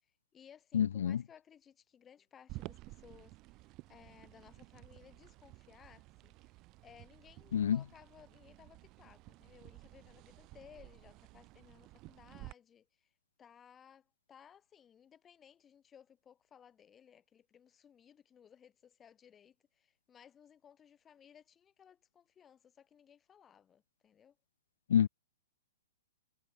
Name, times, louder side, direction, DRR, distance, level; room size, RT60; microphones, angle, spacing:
voice 1, 0.0-13.1 13.4-24.4, left 8 dB, 15° left, 6.5 m, -61 dB
voice 2, 0.7-1.2 7.5-7.8 24.9-25.1, left 9 dB, 55° left, 0.3 m, -28 dB
sound 1, 2.5-12.5, right 21 dB, 30° right, 7.9 m, -53 dB
figure-of-eight pair, 110°, 0 cm